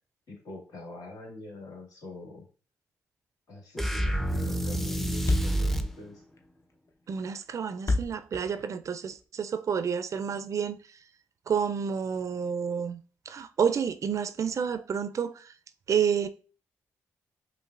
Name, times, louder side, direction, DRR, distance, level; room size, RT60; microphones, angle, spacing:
voice 1, 0.3-2.4 3.5-6.2, left 2 dB, 70° left, 1.5 m, -44 dB
sound 1, 3.8-5.9, right 1 dB, 5° left, 0.5 m, -28 dB
Thump thud, 4.7-4.8 5.0-5.1 5.2-9.3, left 2 dB, 50° left, 0.6 m, -30 dB
voice 2, 7.1-10.8 11.5-13.0 13.3-15.5 15.9-16.3, right 7 dB, 55° right, 0.3 m, -29 dB
5.3 x 2.0 x 2.4 m
supercardioid pair, 45°, 7 cm